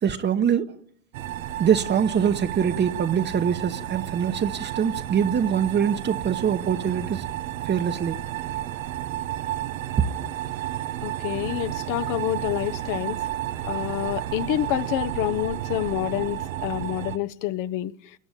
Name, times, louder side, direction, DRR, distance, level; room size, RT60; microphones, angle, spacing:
voice 1, 0.0-0.7 1.6-7.3 7.6-8.2, right 8 dB, 25° right, 1.1 m, -23 dB
sound 1, 1.1-17.2, right 13 dB, 90° right, 1.1 m, -32 dB
voice 2, 11.0-13.2 13.6-17.9, left 14 dB, 50° left, 1.2 m, -28 dB
28.5 x 21.0 x 9.2 m
supercardioid pair, 110°, 39 cm